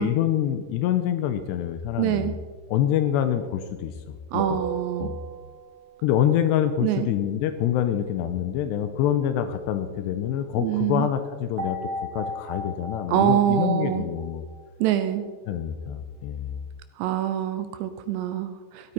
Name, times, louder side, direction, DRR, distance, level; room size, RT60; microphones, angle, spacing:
voice 1, 0.0-2.4 2.7-4.6 5.0-5.2 6.0-14.4 15.5-16.6, left 10 dB, 85° left, 9 dB, 2.6 m, -26 dB
voice 2, 2.0-2.3 4.3-5.1 6.8-7.1 10.6-11.1 13.1-14.0 14.8-15.2 17.0-18.9, right 11 dB, 80° right, 10 dB, 2.6 m, -25 dB
sound 1, 4.4-5.9 11.6-14.9, right 1 dB, 30° right, 3.5 m, -35 dB
15.0 x 13.0 x 4.3 m, 1.5 s
omnidirectional pair, 5.3 m